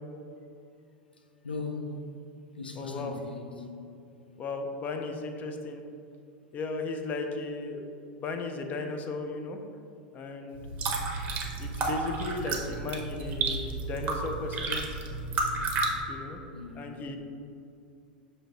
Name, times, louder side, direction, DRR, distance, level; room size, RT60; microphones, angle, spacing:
voice 1, 1.4-2.0 2.6-3.7 16.5-16.9, left 3 dB, 85° left, 3 dB, 0.4 m, -38 dB
voice 2, 2.7-3.2 4.4-5.8 6.5-9.6 10.1-10.6 11.6-14.9 16.1-16.4 16.7-17.2, left 3 dB, 30° left, 5 dB, 0.4 m, -36 dB
sound 1, 10.6-15.9, right 3 dB, 35° right, 0.7 m, -31 dB
6.1 x 2.7 x 2.9 m, 2.6 s
figure-of-eight pair, 85°, 5 cm